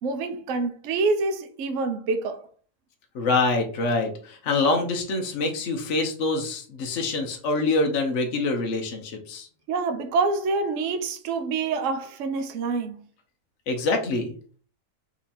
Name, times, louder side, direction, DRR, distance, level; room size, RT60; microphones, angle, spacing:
voice 1, 0.0-2.5 9.7-13.0, right 3 dB, 65° right, 0.9 m, -26 dB
voice 2, 3.1-9.5 13.7-14.3, left 3 dB, 55° left, 1.2 m, -25 dB
4.3 x 2.8 x 4.2 m
omnidirectional pair, 1.6 m